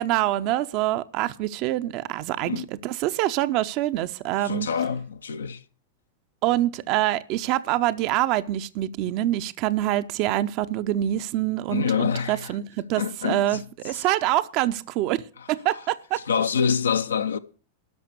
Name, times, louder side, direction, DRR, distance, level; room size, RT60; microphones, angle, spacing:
voice 1, 0.0-4.7 6.4-15.2 15.5-16.2, right 14 dB, 40° right, 0.6 m, -25 dB
voice 2, 4.4-5.6 11.7-12.5 13.0-13.6 13.9-14.0 16.3-17.4, left 6 dB, 70° left, 0.7 m, -26 dB
12.5 x 5.8 x 8.2 m
figure-of-eight pair, 90°, 0 cm